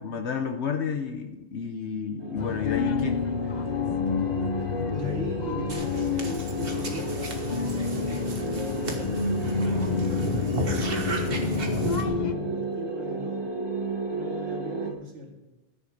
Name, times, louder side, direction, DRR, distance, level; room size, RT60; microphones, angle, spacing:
voice 1, 0.0-3.2, left 6 dB, 70° left, 6 dB, 1.1 m, -31 dB
sound 1, 2.2-14.9, right 3 dB, 20° right, 1.3 m, -34 dB
sound 2, 2.4-12.3, left 6 dB, 45° left, 0.7 m, -29 dB
voice 2, 4.9-9.2 9.7-10.6 11.3-13.5 14.1-15.3, left 1 dB, 90° right, 1 dB, 2.3 m, -38 dB
sound 3, 5.7-12.1, right 2 dB, 55° right, 1.7 m, -35 dB
13.5 x 9.9 x 5.0 m, 1.0 s
omnidirectional pair, 1.2 m